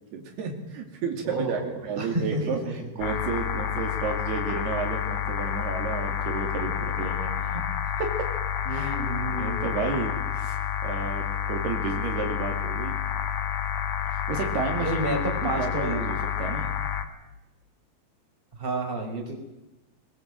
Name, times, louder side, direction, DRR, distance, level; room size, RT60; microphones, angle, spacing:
voice 1, 0.1-7.6 8.0-8.1 8.7-8.9 9.3-13.0 14.3-15.1 15.3-16.7, right 5 dB, 85° right, 2 dB, 4.7 m, -32 dB
voice 2, 1.2-2.9 8.7-9.7 14.8-16.0 18.5-19.4, right 1 dB, 15° right, 1 dB, 4.4 m, -31 dB
sound 1, 3.0-17.1, left 9 dB, 60° left, 2.7 m, -29 dB
21.0 x 20.5 x 7.9 m, 0.97 s
omnidirectional pair, 4.5 m